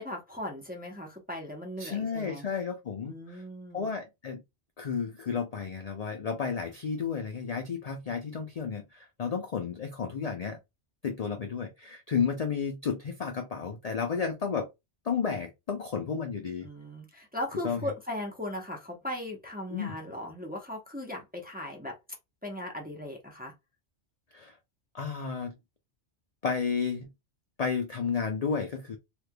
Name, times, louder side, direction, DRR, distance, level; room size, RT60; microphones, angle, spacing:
voice 1, 0.0-2.5 3.1-3.9 16.6-22.0 22.4-23.5, left 1 dB, 10° right, 0.7 m, -38 dB
voice 2, 1.8-3.4 3.7-4.4 4.8-10.6 11.0-14.7 15.0-16.7 17.6-17.8 19.7-19.9 24.3-24.6 24.9-25.5 26.4-27.1 27.6-29.0, left 6 dB, 50° left, 0.5 m, -32 dB
3.3 x 3.2 x 2.2 m
omnidirectional pair, 1.2 m